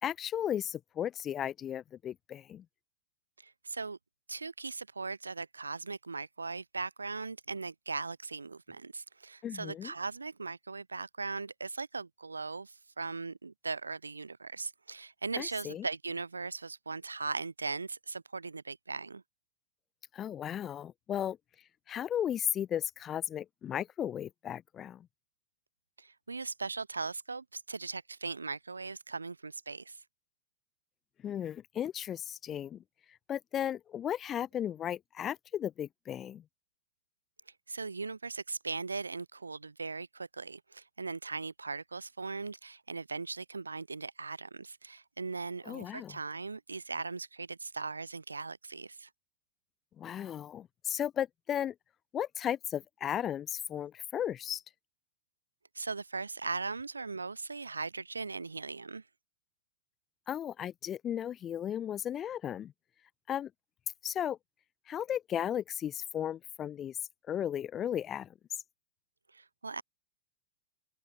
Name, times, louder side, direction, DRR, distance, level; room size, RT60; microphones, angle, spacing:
voice 1, 0.0-2.6 9.4-9.9 15.4-15.8 20.1-21.4 21.9-25.1 31.2-32.8 33.3-36.4 45.7-46.2 50.0-51.7 52.1-54.6 60.3-62.7 63.3-63.5 64.0-64.4 64.9-67.0 67.3-68.3, left 10 dB, 25° left, 4.6 m, -35 dB
voice 2, 3.4-4.0 4.3-19.2 26.0-30.0 37.7-49.1 55.7-59.0 69.3-69.8, right 4 dB, 80° right, 4.3 m, -39 dB
open air
figure-of-eight pair, 90°, 0 cm